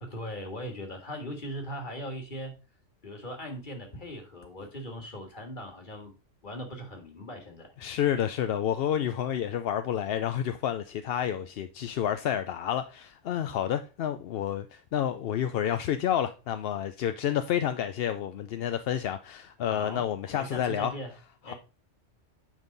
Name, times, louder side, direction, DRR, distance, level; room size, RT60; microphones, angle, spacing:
voice 1, 0.0-2.5 3.0-6.1 6.4-7.7 19.6-21.1 21.4-21.5, equal, 40° left, 2.0 m, -39 dB
voice 2, 7.8-20.9 21.5-21.6, left 10 dB, 65° left, 0.7 m, -29 dB
8.9 x 5.4 x 3.9 m
omnidirectional pair, 1.2 m